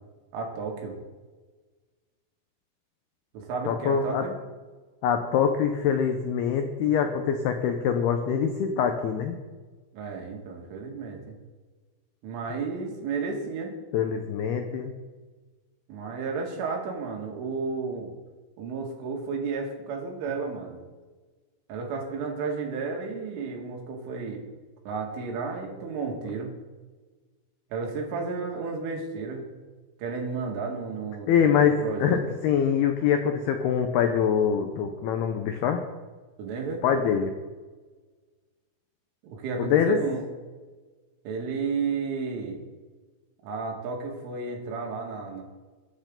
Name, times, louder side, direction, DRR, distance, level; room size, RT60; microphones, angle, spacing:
voice 1, 0.3-1.0 3.3-4.4 9.9-11.4 12.2-13.7 15.9-18.1 18.6-20.8 21.7-24.4 24.9-26.6 27.7-29.5 30.0-32.2 36.4-36.8 39.2-40.2 41.3-42.6 43.4-45.4, right 4 dB, 75° right, 1 dB, 4.5 m, -32 dB
voice 2, 3.7-4.3 5.0-9.4 13.9-14.9 31.3-35.8 36.8-37.3 39.6-40.0, left 7 dB, 90° left, 5 dB, 2.2 m, -24 dB
22.5 x 9.6 x 3.8 m, 1.3 s
omnidirectional pair, 5.8 m